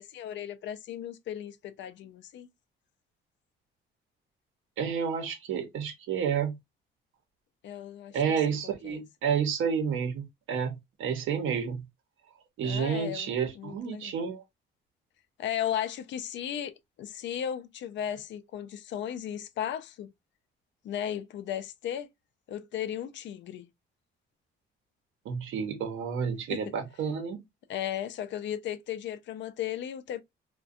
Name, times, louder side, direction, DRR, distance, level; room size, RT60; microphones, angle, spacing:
voice 1, 0.0-2.5 7.6-9.0 12.6-14.1 15.4-20.1 20.8-22.1 22.5-23.7 26.5-26.6 27.7-30.2, left 10 dB, 65° left, 0.4 m, -36 dB
voice 2, 4.8-6.6 8.1-11.8 12.6-14.4 25.2-27.4, right 7 dB, 85° right, 0.7 m, -30 dB
2.3 x 2.2 x 2.4 m
cardioid pair, 90°, 20 cm